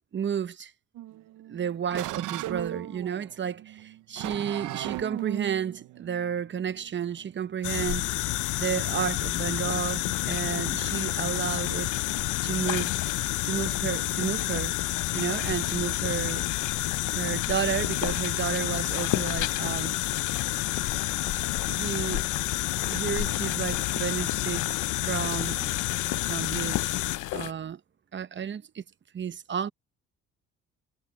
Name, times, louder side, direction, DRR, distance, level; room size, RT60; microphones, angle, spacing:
voice 1, 0.1-0.7 1.5-8.1 8.6-11.9 12.4-13.0 13.4-14.7 15.1-16.7 17.1-20.0 21.6-22.3 22.8-25.9 26.3-26.9 27.3-27.8 28.1-28.8 29.1-29.7, right 8 dB, 40° right, 0.8 m, -32 dB
sound 1, 0.9-7.5, right 15 dB, 90° right, 0.7 m, -37 dB
sound 2, 7.6-27.5, left 16 dB, 80° left, 0.6 m, -29 dB
cardioid pair, 90°, 30 cm